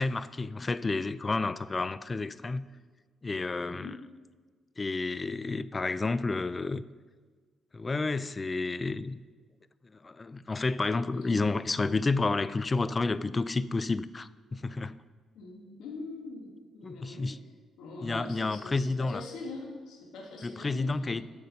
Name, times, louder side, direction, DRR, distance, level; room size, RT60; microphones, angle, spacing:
voice 1, 0.0-2.7 3.2-4.0 4.8-6.8 7.7-9.2 10.0-15.0 16.8-17.4 18.0-19.2 20.4-21.2, left 3 dB, 30° left, 0.3 m, -30 dB
voice 2, 3.6-4.0 11.1-11.5 15.3-17.3 17.8-21.2, left 3 dB, 80° left, 1.6 m, -43 dB
7.9 x 7.0 x 5.3 m
cardioid pair, 75°, 0 cm